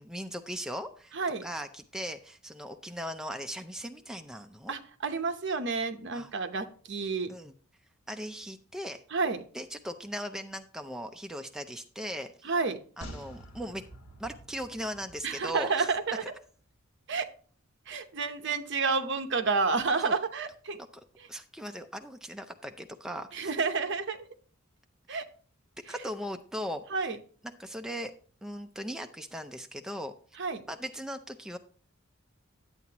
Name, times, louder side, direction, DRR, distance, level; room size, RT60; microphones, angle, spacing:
voice 1, 0.0-1.1 1.4-4.7 6.1-6.3 7.3-7.5 8.1-9.0 9.5-12.5 13.0-13.8 14.2-16.0 16.2-16.3 20.0-20.2 21.3-23.5 25.1-25.2 25.9-27.1 27.4-28.1 28.4-30.1 30.7-31.6, equal, 5° right, 6 dB, 0.5 m, -38 dB
voice 2, 1.1-1.4 4.7-7.3 9.1-9.4 12.4-12.8 15.2-16.2 17.1-17.3 17.9-20.8 23.3-24.3 25.1-25.3 26.9-27.2 30.4-30.6, right 4 dB, 60° right, 8 dB, 0.9 m, -30 dB
sound 1, 13.0-16.4 16.7-16.8, right 1 dB, 60° left, 2.1 m, -48 dB
11.0 x 8.3 x 2.9 m, 0.43 s
head